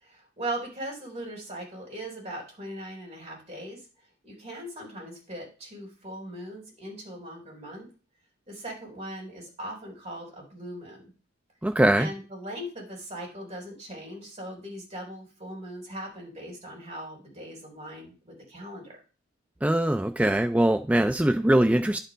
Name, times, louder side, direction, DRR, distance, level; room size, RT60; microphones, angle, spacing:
voice 1, 0.0-3.8 4.2-7.9 8.5-11.1 12.0-19.0, right 1 dB, 30° right, -1 dB, 3.6 m, -39 dB
voice 2, 11.6-12.1 19.6-22.0, right 1 dB, 5° right, 7 dB, 0.4 m, -22 dB
10.5 x 4.5 x 5.1 m, 0.34 s
head